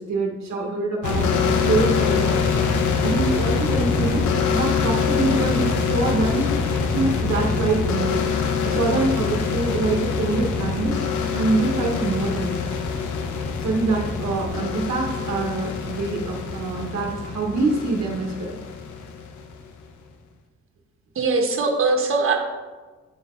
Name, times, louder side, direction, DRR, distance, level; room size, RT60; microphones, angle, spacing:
voice 1, 0.0-2.4 3.0-6.6 6.9-8.3 8.6-12.6 13.6-18.6, right 3 dB, 65° right, -1 dB, 1.1 m, -25 dB
sound 1, 1.0-19.7, left 5 dB, 85° left, 0.9 m, -24 dB
voice 2, 21.1-22.4, right 3 dB, 45° right, 2 dB, 1.3 m, -21 dB
8.9 x 4.0 x 4.4 m, 1.3 s
cardioid pair, 115°, 29 cm